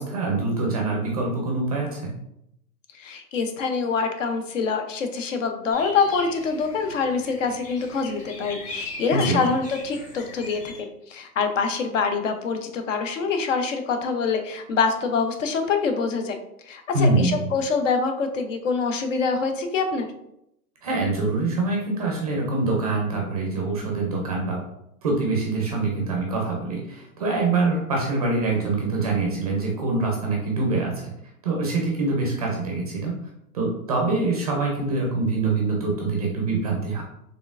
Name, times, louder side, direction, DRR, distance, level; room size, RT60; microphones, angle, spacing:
voice 1, 0.0-2.1 9.1-9.5 16.9-17.4 20.8-24.6 25.0-31.1 31.4-33.1 33.5-37.0, right 3 dB, 25° right, -1 dB, 0.5 m, -24 dB
voice 2, 2.9-16.4 16.7-20.1, left 5 dB, 50° left, 6 dB, 0.6 m, -25 dB
sound 1, 5.7-10.8, left 3 dB, 15° left, 1.1 m, -39 dB
4.3 x 3.2 x 2.4 m, 0.79 s
hypercardioid pair, 150°, 48 cm